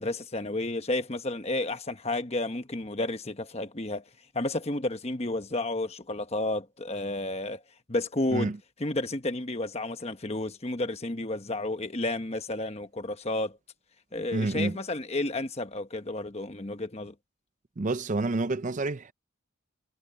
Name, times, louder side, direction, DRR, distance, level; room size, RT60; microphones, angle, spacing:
voice 1, 0.0-4.1 4.3-7.6 7.9-8.5 8.8-13.6 14.1-17.1, left 2 dB, 30° left, 1.2 m, -31 dB
voice 2, 14.3-14.8 17.8-19.1, right 2 dB, 35° right, 0.5 m, -28 dB
head